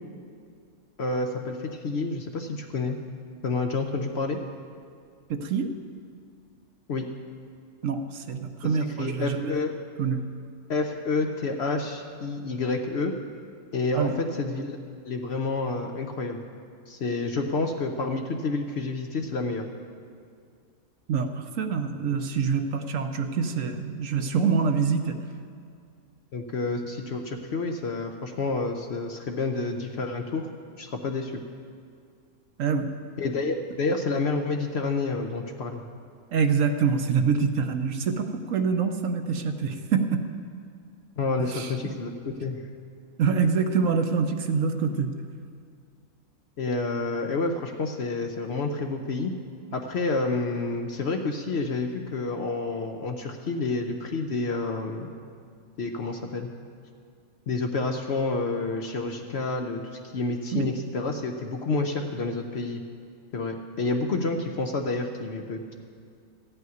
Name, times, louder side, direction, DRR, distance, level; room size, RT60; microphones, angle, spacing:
voice 1, 1.0-3.0 3.4-4.4 6.9-7.1 8.6-9.7 10.7-13.1 13.7-14.1 14.4-14.8 15.0-16.4 16.9-19.6 26.3-30.5 30.8-31.4 33.2-35.8 41.2-42.6 46.6-49.3 49.7-55.1 55.8-56.5 57.5-62.8 63.3-65.7, left 3 dB, 55° left, 4 dB, 0.8 m, -29 dB
voice 2, 5.3-5.7 7.8-9.5 10.0-10.2 13.9-14.1 21.1-25.2 32.6-32.9 36.3-40.2 41.4-41.7 43.2-45.1 60.5-60.7, right 5 dB, 65° right, 7 dB, 1.0 m, -25 dB
14.0 x 5.6 x 9.3 m, 2.2 s
omnidirectional pair, 1.6 m